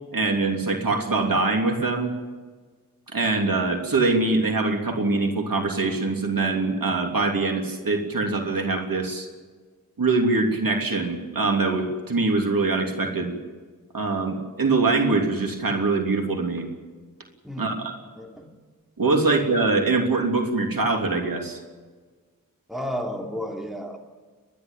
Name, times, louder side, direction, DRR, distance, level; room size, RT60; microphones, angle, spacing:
voice 1, 0.1-2.1 3.1-9.3 10.0-13.3 13.9-16.6 17.6-17.9 19.0-21.6, right 3 dB, 80° right, 2 dB, 3.2 m, -23 dB
voice 2, 17.4-17.8 18.1-18.5 22.7-24.0, equal, ahead, 2 dB, 3.0 m, -32 dB
29.5 x 11.5 x 8.9 m, 1.4 s
wide cardioid pair, 80°, 34 cm